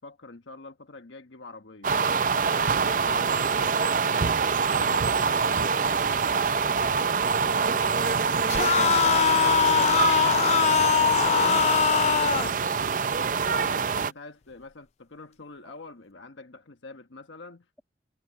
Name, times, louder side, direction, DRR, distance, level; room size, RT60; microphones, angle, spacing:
voice 1, 0.0-1.9 2.7-4.6 5.2-5.8 13.5-17.7, left 3 dB, 85° left, 1.2 m, -46 dB
sound 1, 1.8-14.1, right 5 dB, 45° right, 0.5 m, -25 dB
voice 2, 5.7-6.2 11.0-12.6 13.1-13.6 15.6-15.7, equal, 5° left, 6.3 m, -50 dB
sound 2, 8.5-12.5, left 7 dB, 35° left, 0.3 m, -22 dB
head